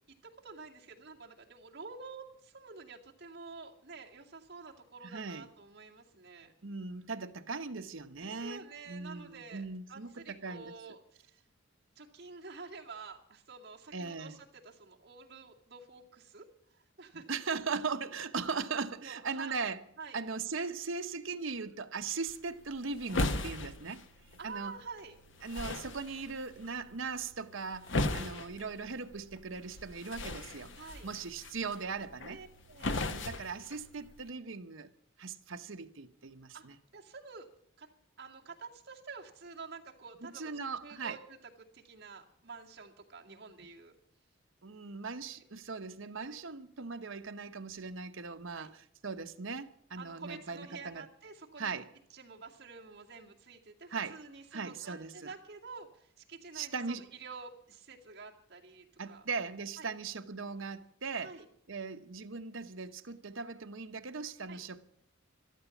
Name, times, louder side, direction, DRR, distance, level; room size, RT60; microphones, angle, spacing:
voice 1, 0.2-6.5 8.2-11.4 12.0-17.3 19.0-19.5 20.0-20.2 24.4-25.1 28.1-28.3 30.7-31.1 32.3-33.1 36.5-36.7 36.9-37.5 37.8-37.9 38.2-44.0 45.3-45.4 46.2-46.4 48.6-48.7 50.0-51.7 52.1-59.2 59.8-59.9 61.1-61.4 64.5-64.6, right 4 dB, 50° right, 2.3 m, -49 dB
voice 2, 5.0-5.5 6.6-10.7 13.9-14.4 17.3-19.8 20.1-24.0 24.4-24.8 25.4-30.7 31.0-32.4 33.0-34.9 35.2-36.7 40.2-41.2 44.6-51.0 51.6-51.9 53.9-54.2 54.5-55.3 56.5-57.0 59.0-61.3 61.7-64.8, right 4 dB, 75° right, 1.0 m, -39 dB
sound 1, 22.3-34.3, left 2 dB, 65° left, 1.2 m, -39 dB
13.0 x 13.0 x 7.2 m
head